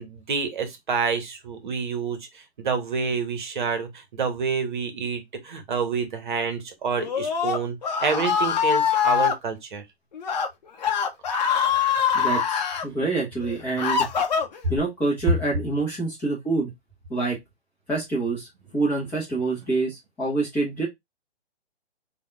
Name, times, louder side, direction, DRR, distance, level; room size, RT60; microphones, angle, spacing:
voice 1, 0.0-9.8, right 5 dB, 50° right, 1.0 m, -28 dB
Screaming, 7.0-9.3 10.1-10.5 10.8-12.8 13.4-14.8, left 7 dB, 40° left, 0.7 m, -23 dB
voice 2, 12.1-14.1 14.7-16.7 17.1-17.4 17.9-20.9, right 3 dB, 5° left, 0.6 m, -26 dB
3.4 x 2.3 x 3.2 m
figure-of-eight pair, 130°, 32 cm